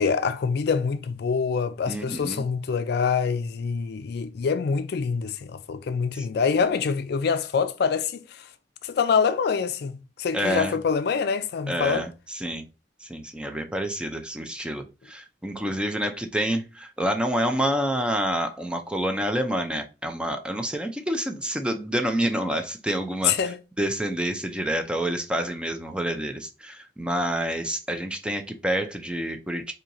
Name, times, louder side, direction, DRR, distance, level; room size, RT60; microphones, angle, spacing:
voice 1, 0.0-8.4 8.8-9.9 10.2-12.1 23.2-23.6, left 5 dB, 60° left, 0.4 m, -25 dB
voice 2, 1.9-2.4 6.2-6.3 10.3-10.8 11.7-12.7 13.0-29.7, equal, 5° right, 0.4 m, -28 dB
4.4 x 2.7 x 2.6 m
head